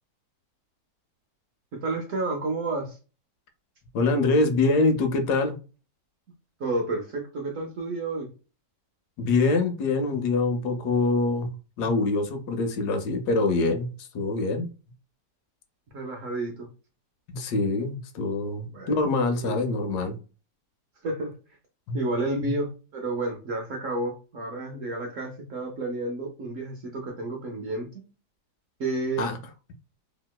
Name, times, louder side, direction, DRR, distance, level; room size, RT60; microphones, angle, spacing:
voice 1, 1.7-3.0 6.6-8.3 15.9-16.7 18.7-18.9 19.4-19.6 21.0-21.3 21.9-27.9 28.8-29.3, right 2 dB, 65° right, 1 dB, 0.8 m, -30 dB
voice 2, 3.9-5.6 9.2-14.7 17.3-20.2 21.9-22.0 29.2-29.4, left 3 dB, 75° left, 6 dB, 1.1 m, -25 dB
3.0 x 2.9 x 2.2 m, 0.33 s
omnidirectional pair, 1.8 m